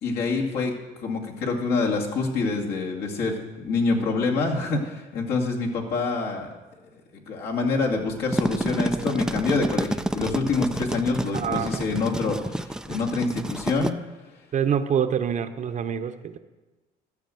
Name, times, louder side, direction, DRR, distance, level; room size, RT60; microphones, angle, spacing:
voice 1, 0.0-0.7 1.0-6.5 6.9-7.0 7.3-13.9, left 3 dB, 70° left, -1 dB, 2.3 m, -26 dB
sound 1, 8.1-13.9, right 1 dB, 5° right, 0.3 m, -29 dB
voice 2, 11.3-11.8 14.5-16.4, right 8 dB, 45° right, 9 dB, 0.8 m, -26 dB
13.0 x 6.5 x 7.7 m, 1.2 s
cardioid pair, 110°, 17 cm